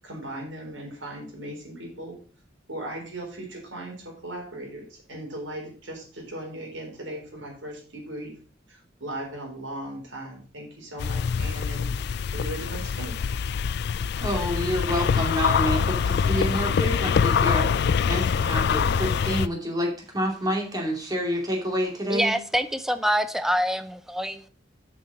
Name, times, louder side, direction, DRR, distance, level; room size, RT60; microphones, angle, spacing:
voice 1, 0.0-2.2 2.7-8.3 8.7-13.2, right 1 dB, 85° right, 0 dB, 4.0 m, -38 dB
sound 1, 11.0-19.5, left 6 dB, 60° left, 0.4 m, -24 dB
voice 2, 14.2-17.7 18.1-22.4, equal, 20° right, 1 dB, 2.6 m, -28 dB
voice 3, 22.1-24.5, equal, ahead, 11 dB, 0.5 m, -25 dB
7.3 x 5.9 x 6.1 m, 0.41 s
head